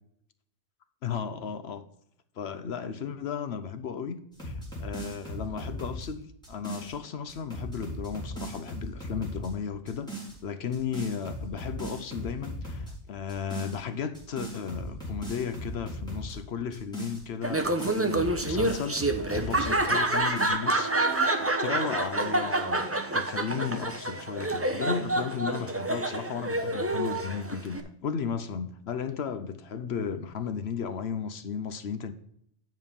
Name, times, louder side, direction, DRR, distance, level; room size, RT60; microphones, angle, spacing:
voice 1, 1.0-1.8 2.4-10.1 10.4-32.1, left 7 dB, 70° left, 0.9 m, -35 dB
sound 1, 4.3-6.9 7.3-9.5 9.9-10.4 10.7-12.9 13.3-13.8 14.1-16.4 16.7-19.8 20.1-20.5, equal, 5° left, 3.9 m, -38 dB
Laughter, 17.4-27.8, right 2 dB, 15° right, 0.7 m, -28 dB
sound 2, 20.0-24.1, right 4 dB, 25° left, 2.8 m, -43 dB
9.3 x 5.3 x 5.3 m
omnidirectional pair, 1.2 m